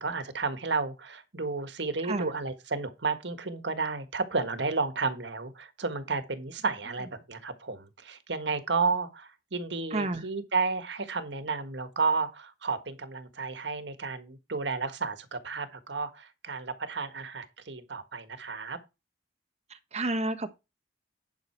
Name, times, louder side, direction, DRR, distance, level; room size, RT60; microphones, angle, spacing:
voice 1, 0.0-18.8, right 4 dB, 80° right, 1.5 m, -32 dB
voice 2, 9.9-10.2 19.9-20.5, right 2 dB, 35° right, 1.3 m, -30 dB
10.5 x 5.7 x 4.5 m
head